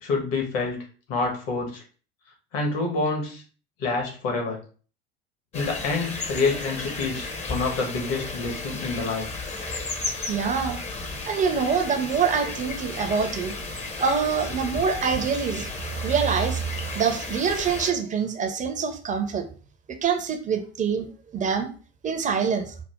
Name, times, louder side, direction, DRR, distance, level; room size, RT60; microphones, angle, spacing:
voice 1, 0.0-0.8 1.1-1.8 2.5-3.4 3.8-4.6 5.5-9.3, left 3 dB, 50° left, 2 dB, 1.5 m, -27 dB
sound 1, 5.5-17.9, left 3 dB, 20° left, 1.0 m, -34 dB
voice 2, 10.3-10.8 11.3-13.5 14.0-15.7 16.0-19.4 19.9-21.1 21.3-21.7 22.0-22.7, right 6 dB, 25° right, 6 dB, 0.8 m, -25 dB
5.2 x 2.4 x 3.6 m, 0.39 s
figure-of-eight pair, 75°, 32 cm